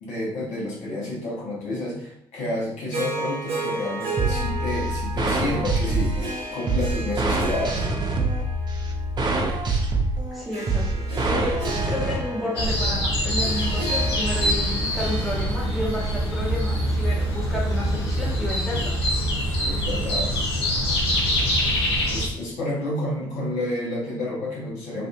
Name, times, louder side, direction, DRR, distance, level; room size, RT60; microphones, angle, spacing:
voice 1, 0.0-7.9 19.6-20.4 22.1-25.1, left 1 dB, 60° left, -5 dB, 0.9 m, -30 dB
Harp, 2.9-17.3, right 2 dB, 70° right, 0.8 m, -35 dB
sound 1, 4.2-12.2, right 2 dB, 35° right, 0.5 m, -25 dB
voice 2, 10.3-11.0 11.3-19.0, left 1 dB, ahead, -4 dB, 0.9 m, -31 dB
sound 2, 12.6-22.3, equal, 85° left, 0.5 m, -24 dB
2.6 x 2.5 x 2.2 m, 0.76 s
figure-of-eight pair, 45°, 13 cm